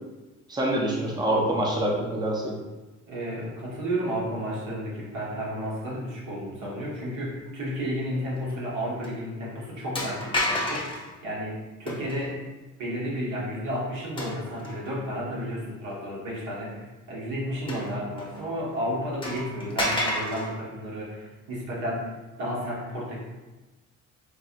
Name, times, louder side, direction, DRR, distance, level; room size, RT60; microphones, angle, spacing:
voice 1, 0.5-2.5, right 1 dB, 15° right, -2 dB, 0.7 m, -25 dB
voice 2, 3.1-12.4 12.8-22.1 22.4-23.2, equal, 85° right, -6 dB, 1.4 m, -32 dB
sound 1, 8.5-8.7 9.0-9.1 9.9-11.1 11.9-12.3 14.2-14.9 15.5-15.6 17.7-18.4 18.7-18.8 19.2-20.5, left 1 dB, 15° left, 0.9 m, -30 dB
4.5 x 2.7 x 2.5 m, 1.1 s
cardioid pair, 90°, 30 cm